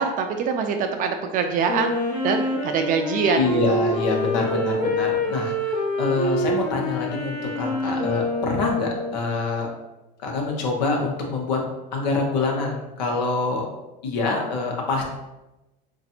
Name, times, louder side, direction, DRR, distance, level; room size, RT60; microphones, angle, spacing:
voice 1, 0.0-3.8 7.8-8.1, right 5 dB, 40° right, 5 dB, 0.4 m, -24 dB
Wind instrument woodwind instrument, 1.7-9.3, left 1 dB, 45° left, 1.1 m, -26 dB
voice 2, 3.4-9.7 10.2-11.6 11.9-13.7 14.0-15.0, left 3 dB, 90° left, 1 dB, 0.9 m, -25 dB
4.9 x 2.5 x 2.8 m, 0.98 s
supercardioid pair, 125°, 21 cm